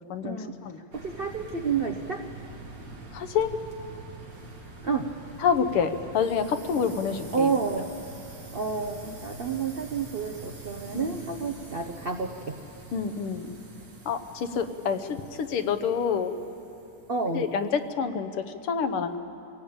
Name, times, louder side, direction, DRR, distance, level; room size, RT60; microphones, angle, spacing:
voice 1, 0.2-0.5 0.9-2.2 4.8-5.1 7.3-7.9 8.5-12.6 17.1-17.5, right 5 dB, 70° right, 5 dB, 0.5 m, -29 dB
sound 1, 0.9-17.7, right 2 dB, 40° right, 2.7 m, -45 dB
voice 2, 3.1-3.5 5.4-7.5 10.9-11.1 12.9-13.5 14.1-15.1 15.4-16.3 17.3-17.7 18.0-18.3 18.6-19.2, left 6 dB, 90° left, 8 dB, 2.0 m, -27 dB
24.0 x 18.0 x 8.8 m, 3.0 s
omnidirectional pair, 2.4 m